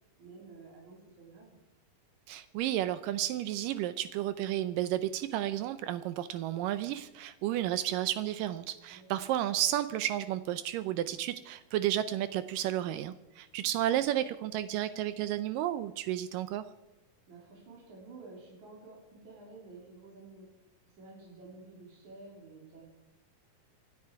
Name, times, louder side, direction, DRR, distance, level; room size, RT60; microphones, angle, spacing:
voice 1, 0.2-1.6 8.9-9.3 13.7-14.0 17.3-20.5 20.9-22.9, right 3 dB, 60° right, -2 dB, 4.8 m, -51 dB
voice 2, 2.3-16.6, right 12 dB, 80° right, 13 dB, 2.2 m, -32 dB
26.0 x 9.6 x 4.7 m, 0.96 s
omnidirectional pair, 3.9 m